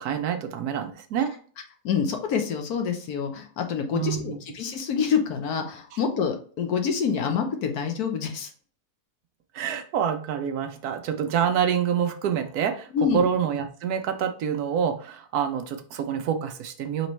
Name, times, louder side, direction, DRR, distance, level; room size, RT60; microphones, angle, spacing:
voice 1, 0.0-1.3 3.9-4.4 9.5-17.1, right 8 dB, 75° right, 7 dB, 1.1 m, -27 dB
voice 2, 1.8-8.5 12.9-13.2, left 6 dB, 70° left, 4 dB, 1.2 m, -27 dB
5.2 x 3.3 x 3.1 m, 0.44 s
omnidirectional pair, 1.7 m